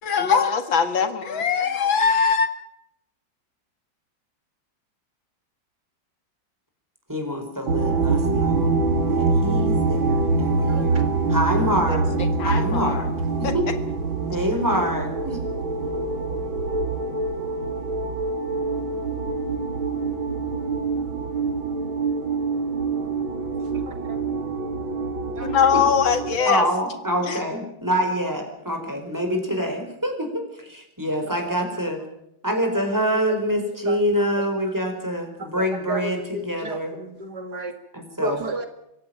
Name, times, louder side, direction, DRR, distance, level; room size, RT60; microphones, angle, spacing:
voice 1, 0.0-2.5 11.9-12.0 12.4-13.0 13.4-13.5 25.4-26.7 27.3-27.4, left 6 dB, 75° left, 9 dB, 2.6 m, -21 dB
voice 2, 7.1-8.7 9.0-12.1 12.4-13.1 13.4-13.7 14.3-15.4 25.7-25.8 26.4-32.0 32.4-36.9 37.9-38.4, equal, 10° right, 4 dB, 5.3 m, -26 dB
sound 1, 7.7-26.4, right 3 dB, 80° right, 3.3 m, -25 dB
voice 3, 10.7-11.1 25.3-25.5 26.4-26.5 32.8-33.2 33.6-34.0 35.4-37.7 38.2-38.7, right 2 dB, 55° right, 8 dB, 2.6 m, -33 dB
25.5 x 16.0 x 9.1 m, 0.79 s
omnidirectional pair, 2.2 m